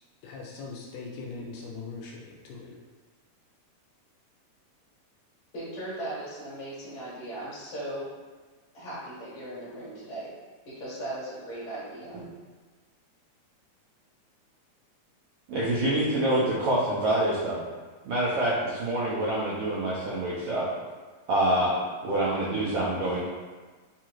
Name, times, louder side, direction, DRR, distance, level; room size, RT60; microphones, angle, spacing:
voice 1, 0.2-2.8, left 4 dB, 80° left, -2 dB, 1.7 m, -40 dB
voice 2, 5.5-8.1 8.7-10.3 10.6-12.1, right 1 dB, 55° left, -11 dB, 1.7 m, -37 dB
voice 3, 15.5-17.6 18.0-20.6 21.3-21.7 22.0-23.2, right 1 dB, 80° right, -9 dB, 1.4 m, -26 dB
4.7 x 2.4 x 3.0 m, 1.4 s
omnidirectional pair, 3.4 m